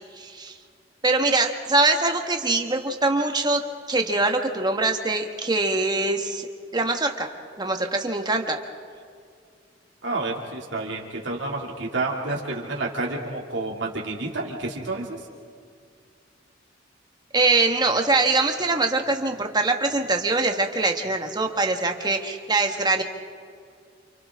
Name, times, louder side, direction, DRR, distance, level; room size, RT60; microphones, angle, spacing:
voice 1, 0.2-0.5 1.0-3.6 3.9-6.5 6.7-8.6 17.3-23.0, right 3 dB, 25° right, 4 dB, 1.6 m, -23 dB
voice 2, 10.0-15.1, right 2 dB, 75° right, -2 dB, 2.6 m, -29 dB
29.0 x 28.0 x 3.7 m, 2.2 s
head